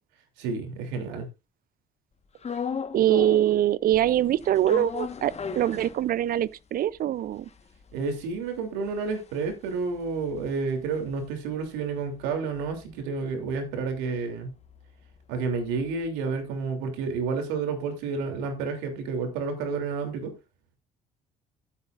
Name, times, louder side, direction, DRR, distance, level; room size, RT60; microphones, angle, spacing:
voice 1, 0.4-1.3 7.9-14.5 15.3-20.3, right 4 dB, 75° right, 3.1 m, -30 dB
sound 1, 2.4-3.6 3.9-6.5 6.9-7.0 7.2-11.7 12.0-16.1, left 6 dB, 35° left, 1.4 m, -38 dB
voice 2, 2.9-7.5, right 12 dB, 55° right, 0.6 m, -23 dB
15.0 x 8.3 x 2.5 m
hypercardioid pair, 55°, 18 cm